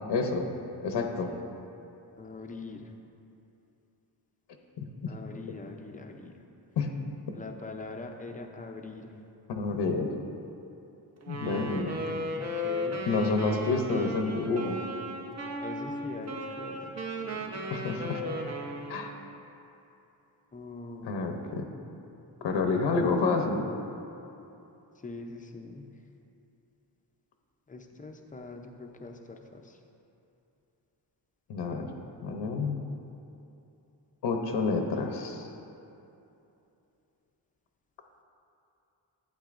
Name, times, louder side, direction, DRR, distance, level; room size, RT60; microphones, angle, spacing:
voice 1, 0.1-0.5 0.8-1.3 4.8-5.1 6.8-6.9 9.5-10.1 11.3-11.9 13.1-14.8 17.7-18.2 18.9-19.1 21.0-21.7 22.4-23.7 31.5-31.9 32.2-32.8 34.2-35.5, left 4 dB, 80° left, 3 dB, 0.8 m, -29 dB
voice 2, 0.9-1.4 2.2-2.9 5.1-6.3 7.3-9.1 11.4-13.1 15.6-17.7 20.5-21.6 25.0-25.9 27.7-29.8, left 3 dB, 20° left, 3 dB, 0.5 m, -43 dB
Wind instrument woodwind instrument, 11.2-19.2, equal, 40° right, 0.8 m, -36 dB
11.5 x 8.7 x 2.5 m, 2.8 s
wide cardioid pair, 145°, 42 cm